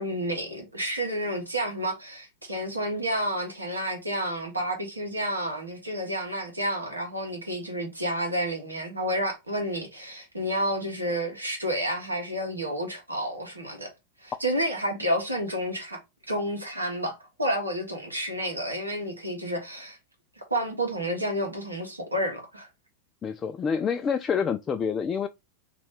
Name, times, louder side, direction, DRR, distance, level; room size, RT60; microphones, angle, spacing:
voice 1, 0.0-13.9 14.2-16.0 16.3-20.0 20.5-22.7, equal, 85° right, 1.4 m, -30 dB
voice 2, 23.2-25.3, left 6 dB, 25° left, 0.3 m, -27 dB
3.1 x 2.9 x 4.5 m
figure-of-eight pair, 90°, 0 cm